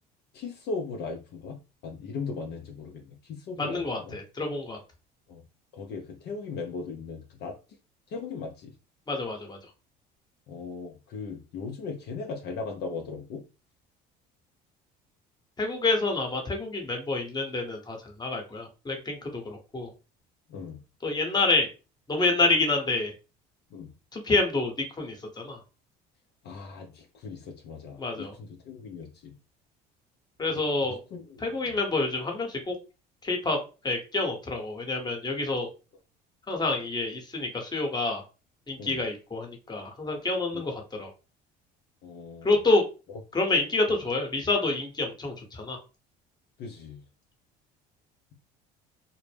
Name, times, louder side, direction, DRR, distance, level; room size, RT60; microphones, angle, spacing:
voice 1, 0.3-4.2 5.3-5.4 5.7-7.5 8.1-8.7 10.5-13.4 20.5-20.8 23.7-23.9 26.4-29.3 30.8-31.8 38.8-39.0 40.5-40.6 42.0-42.5 46.6-47.0, left 4 dB, 55° left, 2 dB, 0.5 m, -38 dB
voice 2, 3.5-4.8 9.1-9.6 15.6-19.9 21.0-21.7 22.1-23.1 24.1-25.6 28.0-28.3 30.4-31.0 31.4-32.8 33.2-33.6 33.8-35.7 36.5-38.2 38.7-41.1 42.4-42.8 43.3-45.8, left 3 dB, 20° left, 2 dB, 1.0 m, -28 dB
2.1 x 2.0 x 3.2 m, 0.31 s
supercardioid pair, 80°, 21 cm